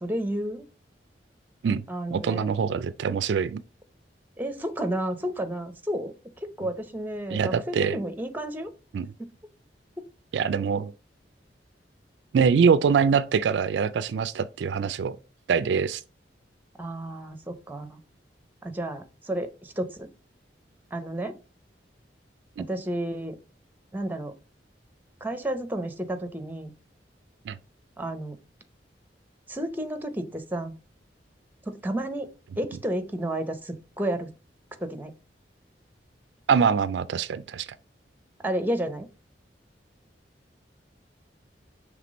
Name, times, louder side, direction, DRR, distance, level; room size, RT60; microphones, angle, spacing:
voice 1, 0.0-0.7 1.9-2.5 4.4-6.1 6.4-8.7 9.2-9.3 10.0-10.1 16.8-18.0 18.6-20.1 20.9-21.4 22.7-23.4 23.9-24.3 25.2-26.7 28.0-28.4 29.5-30.7 31.7-32.3 32.6-34.3 34.8-35.1 38.4-39.1, right 1 dB, 10° right, 0.7 m, -31 dB
voice 2, 2.1-3.6 7.3-8.0 8.9-9.1 10.3-10.9 12.3-15.2 15.5-16.0 22.6-22.7 27.5-27.6 36.5-37.7, right 6 dB, 75° right, 0.3 m, -24 dB
5.9 x 3.3 x 5.0 m
head